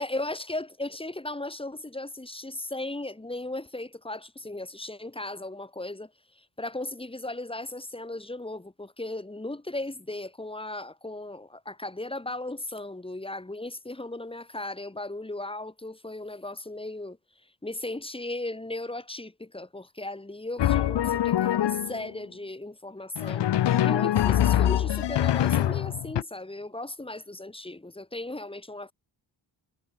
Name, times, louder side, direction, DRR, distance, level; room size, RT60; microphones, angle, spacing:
voice 1, 0.0-17.2 17.6-28.9, left 2 dB, 10° left, 2.9 m, -36 dB
Drum, 20.6-22.1 23.2-26.2, left 12 dB, 65° left, 1.0 m, -24 dB
cardioid pair, 85°, 45 cm